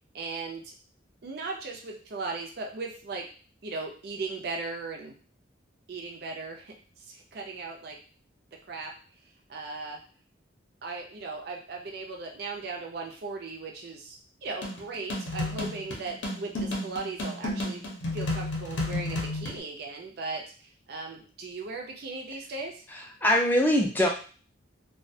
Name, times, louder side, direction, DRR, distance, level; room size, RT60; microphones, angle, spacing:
voice 1, 0.1-0.7 1.2-3.3 3.6-5.1 5.9-8.0 8.7-8.9 9.5-10.0 10.8-17.8 18.1-22.8, right 3 dB, 55° right, 2 dB, 0.4 m, -37 dB
sound 1, 14.6-19.6, left 1 dB, 65° left, 0.6 m, -32 dB
voice 2, 22.9-24.1, equal, 10° left, 0 dB, 0.3 m, -23 dB
2.3 x 2.1 x 2.6 m, 0.39 s
head